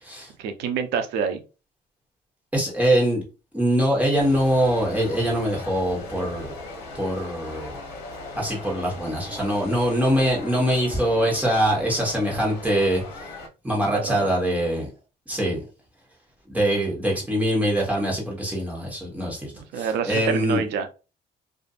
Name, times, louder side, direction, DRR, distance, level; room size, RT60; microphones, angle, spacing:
voice 1, 0.4-1.4 13.8-14.4 19.5-20.9, right 6 dB, 80° right, 8 dB, 0.5 m, -27 dB
voice 2, 2.5-3.2 3.5-6.5 6.9-7.8 8.4-13.3 13.6-14.9 15.3-15.6 16.5-20.6, equal, 10° right, -3 dB, 1.2 m, -23 dB
sound 1, 4.1-13.5, left 2 dB, 75° left, 0.8 m, -39 dB
2.6 x 2.4 x 2.4 m, 0.31 s
cardioid pair, 110°, 17 cm